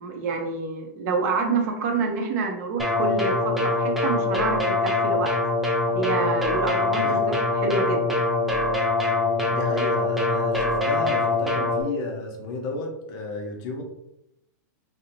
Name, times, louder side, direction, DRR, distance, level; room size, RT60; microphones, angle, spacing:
voice 1, 0.0-5.3 5.9-8.1, right 4 dB, 55° right, 3 dB, 0.6 m, -27 dB
sound 1, 2.8-11.8, left 2 dB, ahead, 0.3 m, -23 dB
voice 2, 6.9-7.2 9.5-13.8, left 2 dB, 40° left, 2 dB, 0.6 m, -32 dB
2.6 x 2.1 x 2.8 m, 0.82 s
hypercardioid pair, 135°, 10 cm